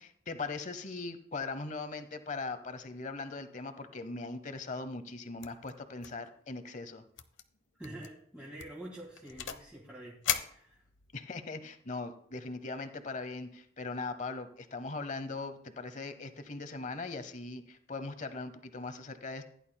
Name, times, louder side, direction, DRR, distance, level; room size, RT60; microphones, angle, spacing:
voice 1, 0.0-7.0 11.1-19.4, left 3 dB, 40° left, 11 dB, 0.8 m, -40 dB
sound 1, 5.4-5.7 6.0-6.3 6.5-6.6 7.2-7.4 7.8-8.1 8.6-9.7 10.2-11.2, left 9 dB, 90° left, 0.8 m, -37 dB
voice 2, 7.8-10.2 10.4-10.8, right 1 dB, 5° right, -4 dB, 1.8 m, -46 dB
15.5 x 11.0 x 2.2 m, 0.63 s
head